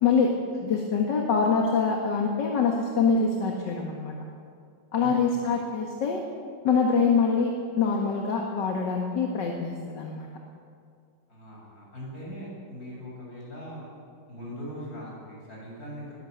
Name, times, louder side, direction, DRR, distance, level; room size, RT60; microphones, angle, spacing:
voice 1, 0.0-4.1 4.9-6.3 6.6-10.3, left 5 dB, 75° left, 1 dB, 2.3 m, -25 dB
voice 2, 5.0-5.5 11.3-13.9 14.3-16.2, equal, 55° left, -4 dB, 7.9 m, -40 dB
20.5 x 17.0 x 7.9 m, 2.2 s
omnidirectional pair, 1.9 m